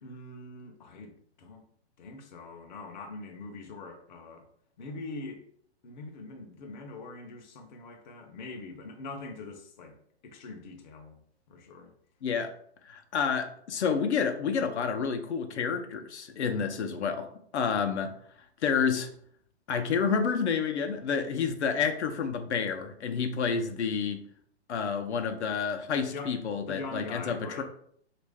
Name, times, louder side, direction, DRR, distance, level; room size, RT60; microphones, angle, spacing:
voice 1, 0.0-1.6 2.0-4.5 4.8-5.4 5.8-9.9 10.2-11.2 11.5-11.9 26.0-27.6, left 3 dB, 45° left, 0.5 m, -43 dB
voice 2, 12.2-12.5 12.9-17.3 17.5-18.1 18.6-19.1 19.7-24.2 24.7-27.6, left 6 dB, 85° left, 0.7 m, -29 dB
3.1 x 2.5 x 3.4 m
hypercardioid pair, 160°, 33 cm